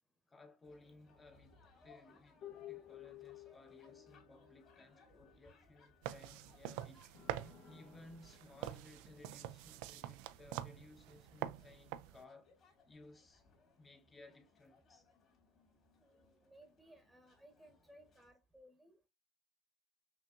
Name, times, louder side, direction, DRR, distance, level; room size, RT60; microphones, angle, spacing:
voice 1, 0.3-13.5 13.8-15.1, left 2 dB, 20° left, 0.9 m, -60 dB
sound 1, 0.6-18.3, left 3 dB, 40° left, 2.0 m, -69 dB
sound 2, 1.1-6.5 7.1-9.5 10.5-10.6, left 12 dB, 60° left, 0.8 m, -57 dB
sound 3, 6.0-12.2, right 13 dB, 70° right, 0.3 m, -46 dB
voice 2, 16.0-19.1, right 1 dB, ahead, 1.0 m, -62 dB
5.8 x 2.5 x 2.5 m
supercardioid pair, 95°, 0 cm